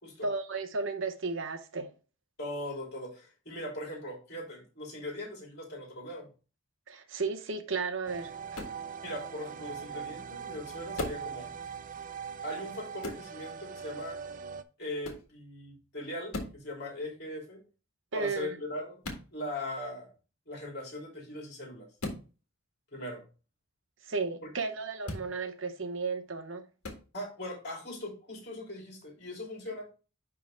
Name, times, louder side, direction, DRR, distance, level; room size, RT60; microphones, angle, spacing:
voice 1, 0.2-1.9 6.9-8.6 18.1-18.5 24.0-26.7, right 4 dB, 55° right, 0.8 m, -34 dB
voice 2, 2.4-6.3 9.0-11.5 12.4-14.2 14.8-17.6 18.1-19.0 19.3-20.1 20.5-21.9 22.9-23.2 27.1-29.9, left 1 dB, 45° left, 3.0 m, -40 dB
sound 1, 8.1-14.6, right 6 dB, 35° right, 0.4 m, -41 dB
sound 2, 8.5-8.8 10.9-11.3 13.0-13.3 15.0-15.3 16.3-16.6 19.0-19.3 22.0-22.2 25.0-25.3 26.8-27.0, left 2 dB, 75° left, 1.7 m, -37 dB
10.5 x 3.5 x 3.2 m
head